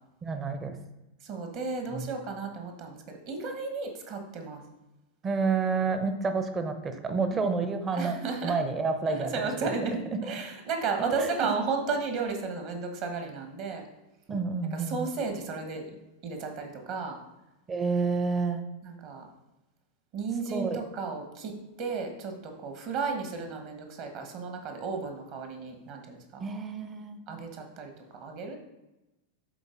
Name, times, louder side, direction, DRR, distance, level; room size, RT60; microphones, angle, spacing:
voice 1, 0.2-0.8 1.9-2.1 5.2-8.2 8.4-9.3 10.1-10.2 11.0-11.5 14.3-15.1 17.7-18.6 20.5-20.8 26.4-27.2, right 4 dB, 20° right, 8 dB, 0.7 m, -29 dB
voice 2, 1.2-4.6 7.3-7.5 7.9-8.5 9.1-13.9 14.9-15.8 16.2-17.2 18.8-19.3 20.1-26.4 27.3-28.6, right 4 dB, 45° right, 4 dB, 1.2 m, -34 dB
11.5 x 4.0 x 2.6 m, 0.97 s
figure-of-eight pair, 90°, 0 cm